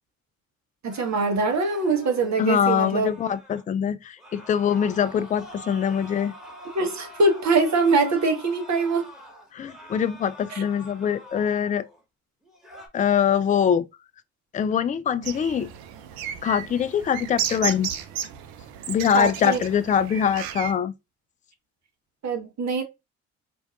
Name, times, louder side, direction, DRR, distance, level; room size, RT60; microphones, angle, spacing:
voice 1, 0.8-3.1 6.7-9.1 10.5-10.6 19.1-19.6 22.2-22.8, right 3 dB, 50° right, 1.2 m, -23 dB
sound 1, 0.9-3.6 4.2-12.0 12.4-12.9, equal, ahead, 1.5 m, -45 dB
voice 2, 2.4-6.3 9.5-11.8 12.9-13.9 14.5-15.7 16.4-17.9 18.9-20.9, left 8 dB, 20° left, 0.3 m, -23 dB
sound 2, 15.2-20.7, right 9 dB, 75° right, 0.7 m, -34 dB
4.4 x 2.6 x 2.3 m
hypercardioid pair, 50°, 37 cm